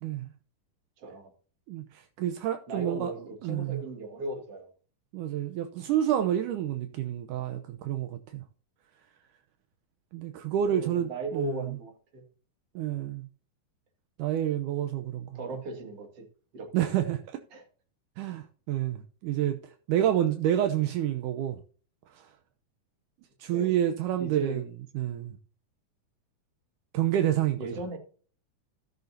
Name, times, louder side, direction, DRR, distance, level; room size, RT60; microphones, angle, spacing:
voice 1, 0.0-0.3 1.7-3.1 3.4-3.8 5.1-8.4 10.1-11.7 12.8-13.3 14.2-15.4 16.7-17.2 18.2-21.6 22.1-22.3 23.4-24.6 25.0-25.4 26.9-27.6, right 11 dB, 80° right, 2.3 m, -29 dB
voice 2, 1.0-1.3 2.7-4.7 10.7-12.2 15.3-16.3 16.5-16.9 17.5-17.6 23.5-23.7 24.2-24.7 27.6-28.0, right 2 dB, 50° right, 2.9 m, -37 dB
18.0 x 6.8 x 2.7 m
omnidirectional pair, 3.7 m